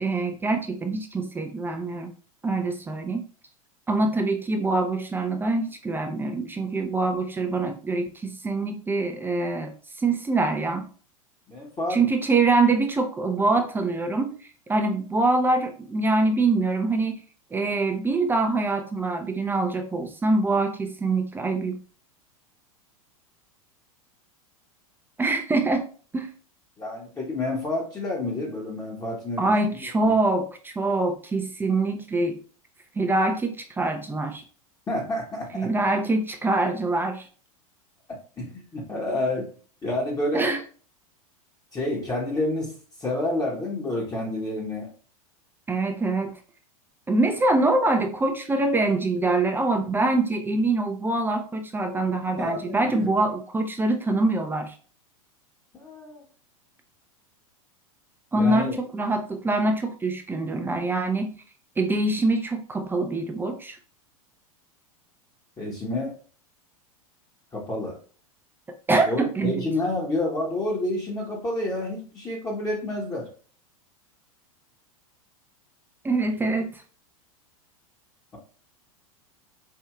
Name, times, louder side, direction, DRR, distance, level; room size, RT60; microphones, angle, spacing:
voice 1, 0.0-2.1 2.4-3.2 3.9-10.8 11.9-14.3 14.7-17.2 17.5-21.8 25.2-25.9 26.1-26.3 29.4-32.4 33.0-34.4 35.5-37.3 40.3-40.6 45.7-46.3 47.1-54.7 58.3-61.3 61.8-63.8 68.9-69.6 76.0-76.8, right 2 dB, 10° right, 4 dB, 0.5 m, -24 dB
voice 2, 11.5-12.0 26.8-30.1 34.9-35.7 38.4-39.5 39.8-40.5 41.7-44.9 52.4-53.1 55.7-56.2 58.3-58.7 65.6-66.2 67.5-68.0 69.0-73.3, left 1 dB, 20° left, -2 dB, 1.0 m, -29 dB
4.6 x 2.6 x 2.3 m, 0.40 s
figure-of-eight pair, 95°, 18 cm